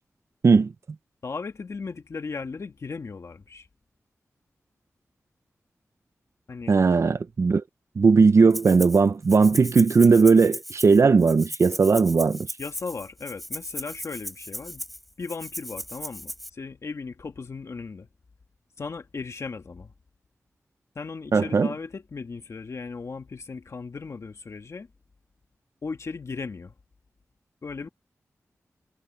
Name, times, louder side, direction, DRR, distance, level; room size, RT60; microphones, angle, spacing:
voice 1, 1.2-3.7 6.5-6.8 12.6-14.8 15.2-18.1 18.8-19.9 21.0-24.9 25.8-26.7 27.6-27.9, left 4 dB, 60° left, 1.7 m, -36 dB
voice 2, 6.7-7.6 8.0-12.5 21.3-21.7, right 4 dB, 60° right, 0.7 m, -18 dB
Rattle (instrument), 8.5-9.0 9.3-16.5, equal, ahead, 3.8 m, -37 dB
wide cardioid pair, 75°, 6 cm